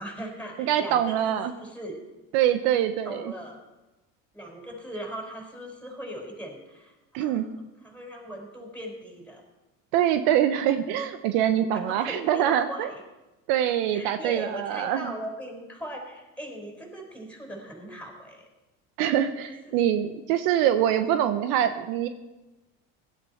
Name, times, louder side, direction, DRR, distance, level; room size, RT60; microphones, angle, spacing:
voice 1, 0.0-2.0 3.0-3.6 4.3-7.4 7.8-9.4 11.7-13.0 13.9-18.5 19.6-19.8, equal, 5° left, 1 dB, 4.7 m, -39 dB
voice 2, 0.6-1.5 2.3-3.3 7.1-7.4 9.9-12.9 13.5-15.1 19.0-22.1, right 10 dB, 70° right, 10 dB, 1.0 m, -24 dB
16.5 x 12.0 x 4.3 m, 1.0 s
hypercardioid pair, 85°, 38 cm